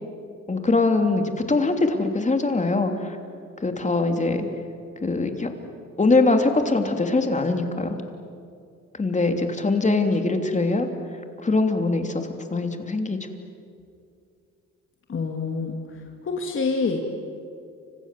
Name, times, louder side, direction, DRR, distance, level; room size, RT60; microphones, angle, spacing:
voice 1, 0.5-3.2 3.6-4.5 5.0-5.5 6.0-8.0 9.0-10.9 11.4-13.2, left 3 dB, 25° left, 5 dB, 3.1 m, -22 dB
voice 2, 15.1-15.8 16.2-17.0, left 4 dB, 45° left, 2 dB, 2.8 m, -26 dB
29.5 x 26.0 x 7.7 m, 2.4 s
cardioid pair, 90°, 30 cm